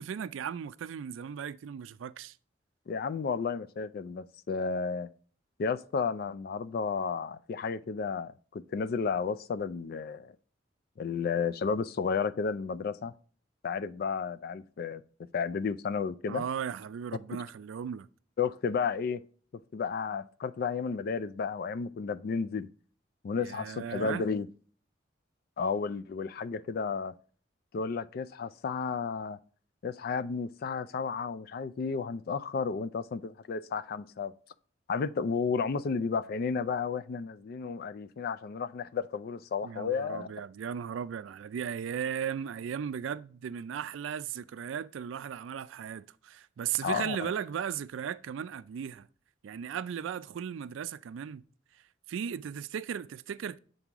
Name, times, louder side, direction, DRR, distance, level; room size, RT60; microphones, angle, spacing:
voice 1, 0.0-2.4 16.3-18.1 23.4-24.2 39.6-49.1 49.4-51.4 51.7-51.8 52.1-53.6, right 8 dB, 85° right, 0.3 m, -36 dB
voice 2, 2.9-5.1 5.6-10.4 11.0-13.1 13.6-15.0 15.3-16.4 18.4-19.2 19.7-22.7 23.2-24.5 25.6-27.2 27.7-29.4 29.8-34.3 34.9-40.3 46.8-47.3, left 5 dB, 50° left, 0.3 m, -32 dB
7.4 x 4.0 x 3.5 m
head